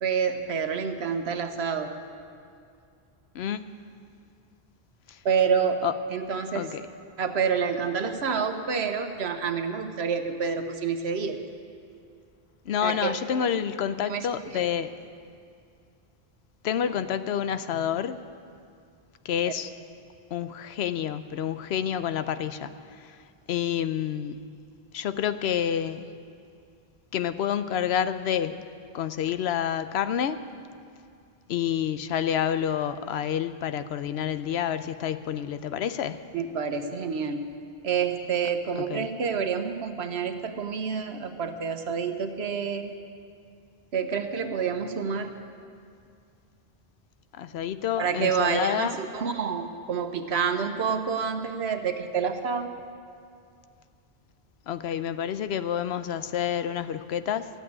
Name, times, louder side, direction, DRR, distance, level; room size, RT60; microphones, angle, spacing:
voice 1, 0.0-1.9 5.2-5.8 6.1-6.7 7.2-11.4 12.8-13.5 14.0-14.7 36.3-37.5 37.8-43.0 43.9-45.3 48.0-52.7, right 6 dB, 90° right, 7 dB, 1.2 m, -28 dB
voice 2, 3.3-3.7 5.1-5.2 5.8-5.9 6.5-6.9 12.7-14.9 16.6-18.2 19.2-19.7 20.3-23.2 23.5-24.4 24.9-26.1 27.1-28.7 28.9-30.4 31.5-36.2 38.9-39.1 47.3-49.0 54.7-57.5, left 9 dB, 85° left, 12 dB, 0.9 m, -28 dB
14.0 x 8.3 x 9.6 m, 2.4 s
omnidirectional pair, 1.0 m